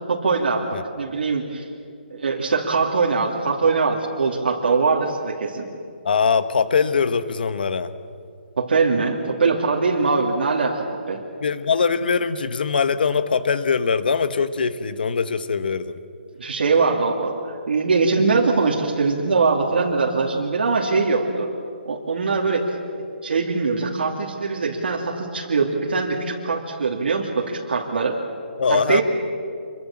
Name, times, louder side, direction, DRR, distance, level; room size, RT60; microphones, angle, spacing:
voice 1, 0.1-0.7 1.0-1.7 2.1-5.7 8.6-11.2 16.4-21.5 21.8-22.7 23.2-28.2 28.7-29.0, right 4 dB, 65° right, -1 dB, 2.7 m, -22 dB
voice 2, 6.0-7.9 11.4-16.0 28.6-29.0, left 5 dB, 55° left, 12 dB, 1.2 m, -22 dB
27.0 x 23.0 x 7.3 m, 2.3 s
hypercardioid pair, 175°, 6 cm